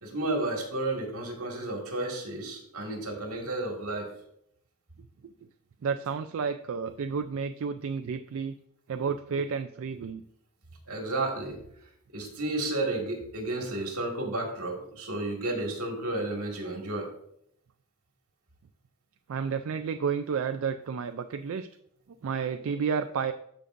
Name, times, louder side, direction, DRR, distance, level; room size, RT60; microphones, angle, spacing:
voice 1, 0.0-4.1 10.9-11.6 12.1-17.1, right 2 dB, 85° right, 1 dB, 1.9 m, -32 dB
voice 2, 5.8-8.5 8.9-10.2 19.3-21.7 22.2-23.3, right 6 dB, 65° right, 8 dB, 0.3 m, -31 dB
13.5 x 5.1 x 2.6 m, 0.73 s
head